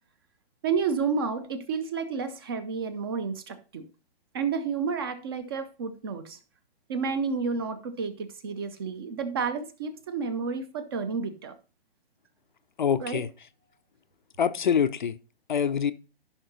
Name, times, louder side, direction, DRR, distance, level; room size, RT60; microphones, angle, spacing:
voice 1, 0.6-3.9 4.3-6.4 6.9-11.6 13.0-13.2, right 5 dB, 25° right, 0.5 m, -30 dB
voice 2, 12.8-13.3 14.4-15.2 15.5-15.9, left 7 dB, 50° left, 0.5 m, -25 dB
14.0 x 5.8 x 2.7 m
figure-of-eight pair, 125°, 31 cm